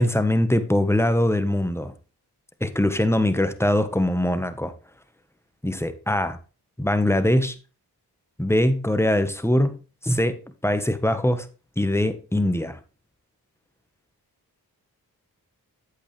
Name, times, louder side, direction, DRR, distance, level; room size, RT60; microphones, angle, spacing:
voice 1, 0.0-1.9 2.6-4.7 5.6-6.4 6.8-7.5 8.4-9.8 10.0-10.4 10.6-11.5 11.8-12.8, left 1 dB, 5° left, 1.3 m, -22 dB
8.4 x 8.4 x 3.3 m
cardioid pair, 45°, 39 cm